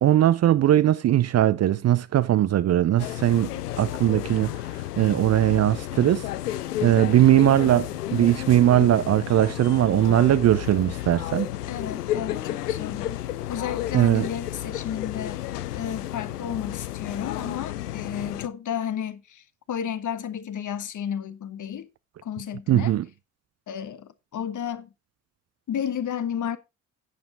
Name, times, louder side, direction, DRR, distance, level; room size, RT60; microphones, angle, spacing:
voice 1, 0.0-4.6 5.0-6.3 6.8-11.5 13.9-14.3 22.7-23.0, right 12 dB, 35° right, 0.6 m, -20 dB
sound 1, 3.0-18.5, left 13 dB, 80° left, 0.6 m, -32 dB
voice 2, 11.7-15.4 15.7-21.9 22.2-22.9 23.7-24.9 25.7-26.6, left 9 dB, 40° left, 1.3 m, -32 dB
11.0 x 9.1 x 3.8 m
figure-of-eight pair, 45°, 46 cm